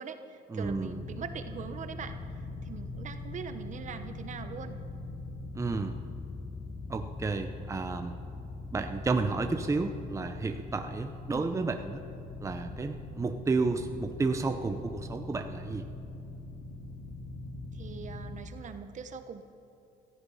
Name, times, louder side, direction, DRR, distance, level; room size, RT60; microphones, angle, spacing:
voice 1, 0.0-4.8 11.3-11.6 17.7-19.4, right 6 dB, 45° right, 9 dB, 1.0 m, -42 dB
voice 2, 0.5-1.0 5.5-6.0 6.9-8.2 8.7-12.0 12.4-15.9, right 3 dB, 20° right, 6 dB, 0.9 m, -31 dB
sound 1, 0.6-18.4, left 2 dB, 55° left, 2.8 m, -42 dB
16.5 x 14.0 x 5.6 m, 2.7 s
cardioid pair, 110°, 17 cm